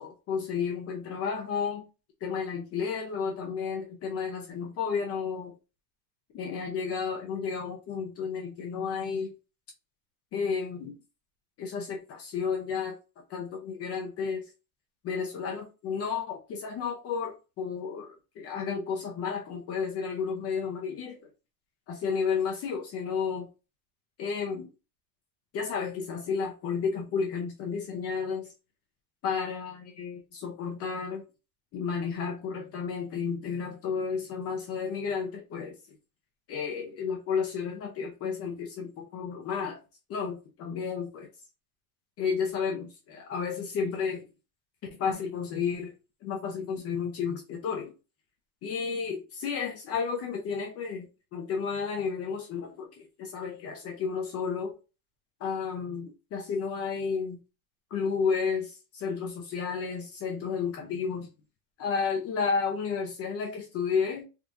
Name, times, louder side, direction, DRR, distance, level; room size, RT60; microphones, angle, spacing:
voice 1, 0.0-1.8 2.2-5.5 6.3-9.3 10.3-11.0 11.6-13.0 13.3-14.4 15.0-21.2 21.9-23.5 24.2-24.7 25.5-28.5 29.2-31.2 31.7-36.0 36.5-39.8 40.1-41.3 42.2-44.3 45.0-45.9 46.2-47.9 48.6-54.7 55.4-57.4 57.9-61.3 61.8-64.2, left 6 dB, 30° left, 0.5 m, -32 dB
3.5 x 2.7 x 2.4 m
cardioid pair, 160°, 48 cm